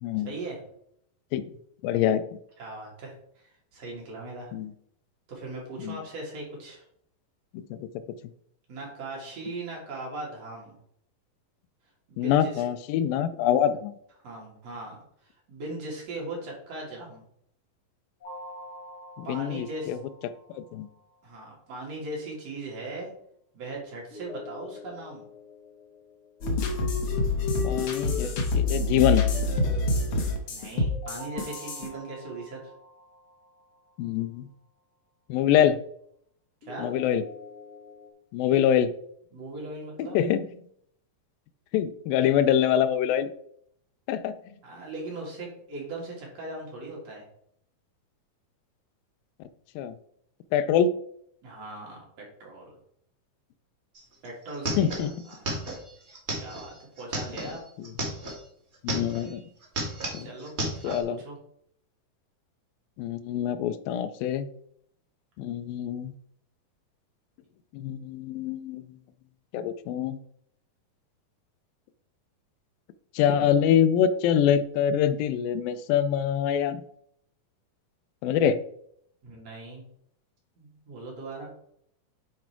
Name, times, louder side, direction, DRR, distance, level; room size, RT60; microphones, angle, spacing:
voice 1, 0.3-0.6 2.6-4.5 5.3-6.8 8.7-10.8 12.1-12.6 14.2-17.2 19.2-20.0 21.2-23.1 23.5-25.3 30.4-32.7 36.6-36.9 39.3-40.2 44.6-47.3 51.4-52.8 54.2-55.8 56.4-57.6 60.2-60.5 60.8-61.4 79.2-79.9 80.6-81.5, right 2 dB, 50° right, -3 dB, 3.0 m, -39 dB
voice 2, 1.8-2.2 4.5-4.7 5.9-6.0 7.7-7.9 12.2-14.0 19.2-20.0 20.6-20.9 27.6-29.3 34.0-34.5 35.3-35.8 36.8-37.2 38.3-38.9 40.0-40.5 41.7-43.3 44.1-44.4 49.8-50.0 50.5-50.9 54.8-55.1 58.8-59.4 60.1-60.3 60.8-61.2 63.0-64.5 65.4-66.1 67.7-68.8 69.5-70.2 73.2-76.8 78.2-78.6, left 9 dB, 90° left, 12 dB, 2.3 m, -25 dB
sound 1, 18.2-21.1 24.1-27.1 30.9-34.1 36.6-38.1, left 2 dB, 35° left, 1.9 m, -46 dB
sound 2, 26.4-31.9, left 3 dB, 60° left, 1.5 m, -26 dB
sound 3, 53.9-54.0 54.2-58.4 58.7-59.4 59.6-61.0, right 1 dB, 35° right, 1.1 m, -33 dB
8.3 x 4.4 x 4.5 m, 0.69 s
omnidirectional pair, 3.9 m